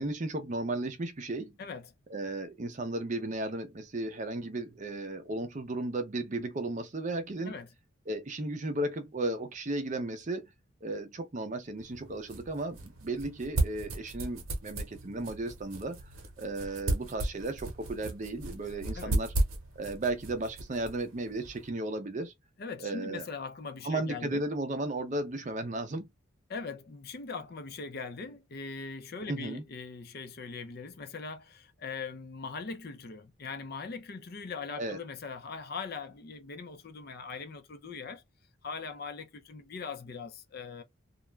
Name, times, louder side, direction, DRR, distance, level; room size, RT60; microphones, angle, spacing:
voice 1, 0.0-1.6 2.1-7.5 8.1-10.5 10.8-16.0 16.4-19.3 19.8-22.3 22.8-23.3 23.8-26.1 29.3-29.6 34.8-35.0, right 2 dB, 35° right, 0.5 m, -35 dB
voice 2, 1.6-1.9 7.4-7.7 18.9-19.2 22.6-24.4 26.5-38.2 38.6-40.8, left 4 dB, 50° left, 0.5 m, -41 dB
sound 1, 11.8-21.7, right 2 dB, 90° right, 0.9 m, -35 dB
2.4 x 2.1 x 3.1 m
head